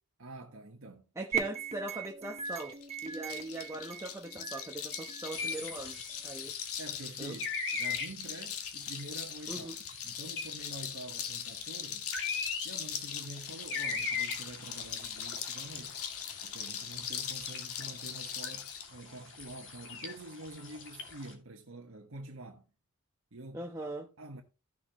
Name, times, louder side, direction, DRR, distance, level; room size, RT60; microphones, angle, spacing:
voice 1, 0.2-1.0 6.8-12.1 12.6-16.0 16.4-22.6 23.3-24.4, right 2 dB, 65° right, 1.3 m, -47 dB
voice 2, 1.2-2.7 3.0-6.0 6.2-6.5 7.2-7.4 9.5-9.7 23.5-24.1, right 2 dB, 15° right, 1.0 m, -40 dB
sound 1, 1.3-6.3, right 6 dB, 30° right, 1.5 m, -40 dB
sound 2, 2.4-18.9, left 8 dB, 80° left, 1.5 m, -41 dB
sound 3, 5.3-21.3, left 5 dB, 60° left, 2.5 m, -41 dB
14.5 x 6.8 x 3.0 m
head